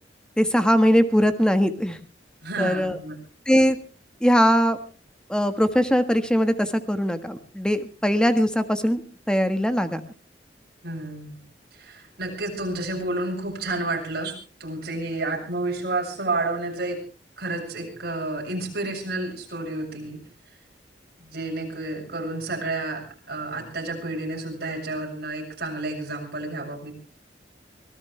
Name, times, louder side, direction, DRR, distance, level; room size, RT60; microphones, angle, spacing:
voice 1, 0.4-2.0 2.6-3.0 3.5-3.8 4.2-4.8 5.3-9.0 9.3-10.0, equal, 5° left, 9 dB, 1.5 m, -21 dB
voice 2, 2.4-3.2 10.8-11.4 11.7-14.3 14.6-17.0 17.4-20.2 21.2-26.9, right 2 dB, 60° right, -1 dB, 7.1 m, -30 dB
24.5 x 17.0 x 3.3 m, 0.37 s
head